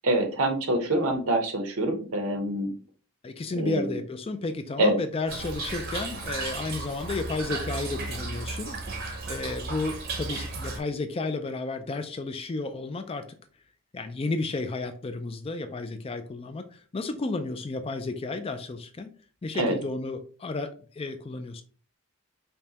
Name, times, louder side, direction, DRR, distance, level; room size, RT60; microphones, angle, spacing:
voice 1, 0.0-2.7 3.6-3.9 4.8-5.0 19.5-19.7, right 1 dB, 80° right, 0.9 m, -25 dB
voice 2, 3.2-8.8 9.3-13.2 13.9-19.1 19.4-21.6, left 3 dB, 25° left, 0.3 m, -32 dB
Toilet flush / Trickle dribble, 5.3-10.8, right 3 dB, 45° right, 0.7 m, -34 dB
5.2 x 2.2 x 2.8 m
head